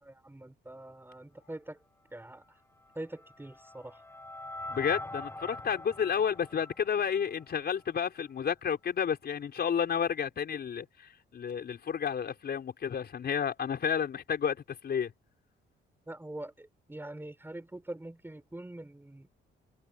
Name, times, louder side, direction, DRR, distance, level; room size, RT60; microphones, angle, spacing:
voice 1, 0.0-1.8 2.1-2.4 3.0-4.0 5.7-5.8 16.1-19.3, right 1 dB, 10° right, 5.3 m, -44 dB
sound 1, 2.8-7.9, left 1 dB, 10° left, 5.2 m, -44 dB
voice 2, 4.7-15.1, left 7 dB, 55° left, 5.1 m, -31 dB
cardioid pair, 90°, 20 cm